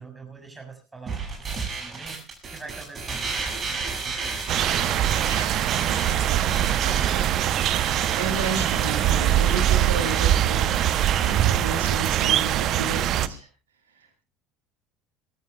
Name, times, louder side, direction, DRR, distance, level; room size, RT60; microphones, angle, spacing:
voice 1, 0.0-4.4 6.4-6.7, right 4 dB, 15° right, 3 dB, 6.9 m, -43 dB
sound 1, 1.1-11.3, right 4 dB, 35° right, 6.9 m, -33 dB
sound 2, 4.5-13.3, right 11 dB, 55° right, 0.8 m, -23 dB
voice 2, 5.2-6.4 6.8-6.9 7.4-10.8 11.2-13.5 13.9-14.1, right 3 dB, 90° right, 3 dB, 6.3 m, -33 dB
26.0 x 14.5 x 2.4 m, 0.28 s
hypercardioid pair, 70°, 0 cm